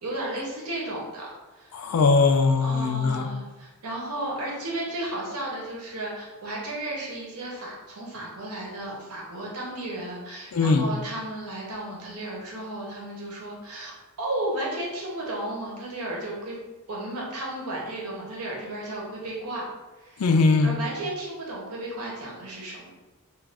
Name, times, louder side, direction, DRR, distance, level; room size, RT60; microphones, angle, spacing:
voice 1, 0.0-1.9 2.6-16.6 16.9-19.7 20.0-20.3 20.6-22.9, right 1 dB, 80° right, -3 dB, 0.8 m, -34 dB
voice 2, 1.7-3.3 10.5-10.9 20.2-20.7, left 4 dB, 70° left, 6 dB, 0.3 m, -20 dB
2.4 x 2.3 x 3.3 m, 1.2 s
head